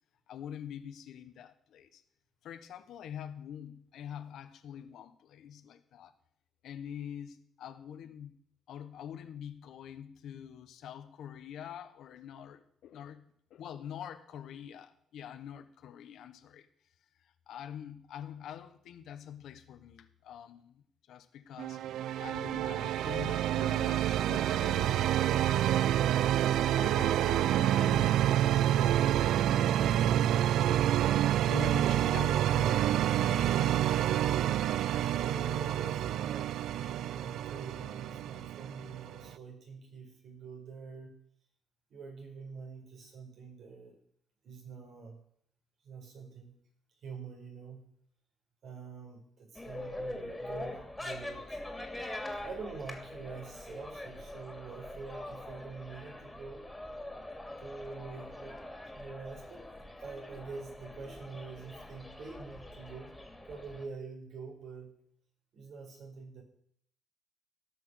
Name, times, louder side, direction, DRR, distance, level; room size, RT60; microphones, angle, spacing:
voice 1, 0.3-2.0 2.4-6.1 6.6-8.3 8.7-16.7 17.2-21.8 22.2-25.7 26.5-30.4 31.5-33.9, left 9 dB, 75° left, 10 dB, 1.2 m, -45 dB
sound 1, 21.6-39.3, right 12 dB, 80° right, 0.4 m, -28 dB
voice 2, 31.3-32.6 33.5-33.6 33.9-34.3 34.8-41.2 41.9-44.0 44.4-45.2 45.8-46.6 47.0-47.8 48.6-51.6 52.4-56.7 57.6-58.6 58.9-63.2 63.5-65.0 65.5-66.4, right 4 dB, 65° right, 0 dB, 4.8 m, -46 dB
sound 2, 49.5-63.9, left 1 dB, 10° left, 2.7 m, -43 dB
16.5 x 6.2 x 6.4 m, 0.67 s
cardioid pair, 90°, 0 cm